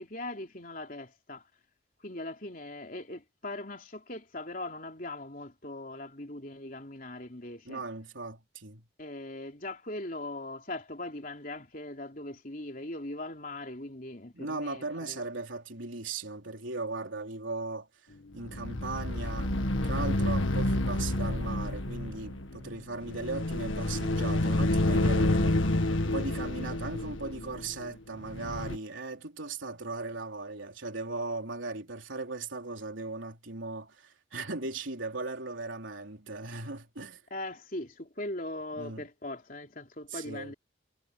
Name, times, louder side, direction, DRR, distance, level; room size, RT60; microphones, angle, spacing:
voice 1, 0.0-1.4 2.0-7.8 9.0-15.2 37.3-40.5, left 2 dB, 45° left, 3.5 m, -40 dB
voice 2, 7.7-8.9 14.3-17.9 18.3-37.2 38.7-39.1 40.1-40.5, right 3 dB, 85° right, 3.7 m, -38 dB
sound 1, 18.4-28.8, left 1 dB, 90° left, 1.8 m, -29 dB
head